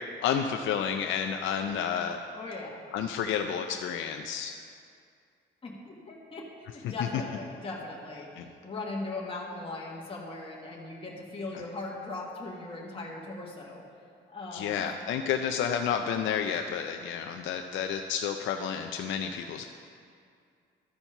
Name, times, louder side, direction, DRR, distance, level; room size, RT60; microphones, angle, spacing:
voice 1, 0.2-2.2 2.9-4.5 6.8-6.9 8.4-8.5 14.5-19.6, left 8 dB, 75° left, 5 dB, 0.5 m, -30 dB
voice 2, 2.3-2.8 5.6-8.3 8.6-13.8 14.3-14.9, left 2 dB, 25° left, -3 dB, 1.4 m, -39 dB
12.5 x 4.5 x 5.5 m, 2.3 s
cardioid pair, 90°, 20 cm